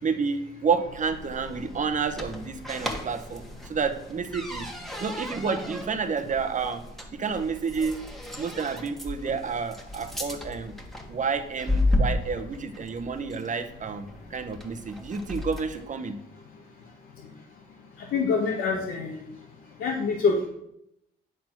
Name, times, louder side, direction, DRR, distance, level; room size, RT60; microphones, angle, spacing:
voice 1, 0.0-4.7 5.0-6.8 7.1-8.0 8.4-10.7 11.1-16.2, right 5 dB, 40° right, 9 dB, 0.9 m, -30 dB
sound 1, 0.8-15.9, left 1 dB, ahead, 1.5 m, -34 dB
voice 2, 18.1-19.2 19.8-20.4, left 5 dB, 75° left, -1 dB, 1.4 m, -25 dB
9.2 x 4.3 x 5.9 m, 0.82 s
cardioid pair, 90°, 20 cm